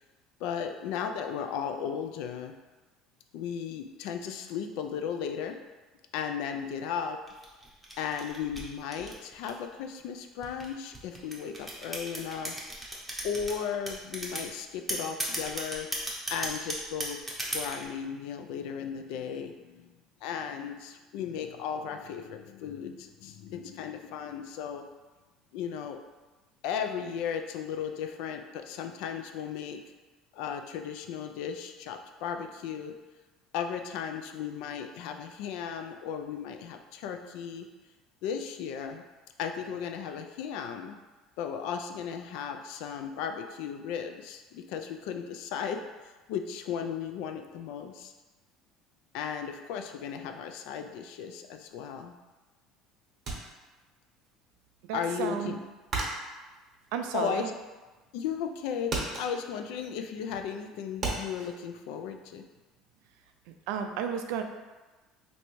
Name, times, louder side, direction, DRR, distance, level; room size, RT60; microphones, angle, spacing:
voice 1, 0.4-2.5 3.3-5.6 6.1-7.2 8.0-12.6 13.2-15.9 16.3-19.9 20.2-24.9 25.5-26.0 26.6-29.8 30.3-33.0 33.5-37.7 38.2-39.0 39.4-41.0 41.4-45.8 46.3-48.1 49.1-52.2 54.9-55.6 57.1-57.5 58.1-62.5, left 7 dB, 75° left, 6 dB, 0.3 m, -35 dB
sound 1, 7.3-9.7 10.4-13.5 13.9-14.5 14.9-17.9, right 1 dB, 10° right, 0.7 m, -35 dB
sound 2, 53.3-54.3 54.6-57.8 58.2-58.6 58.8-61.5, right 3 dB, 40° right, 0.9 m, -36 dB
voice 2, 54.9-55.5 56.9-57.5 63.7-64.4, right 8 dB, 80° right, 6 dB, 0.3 m, -32 dB
3.2 x 2.6 x 3.0 m, 1.2 s
cardioid pair, 125°, 0 cm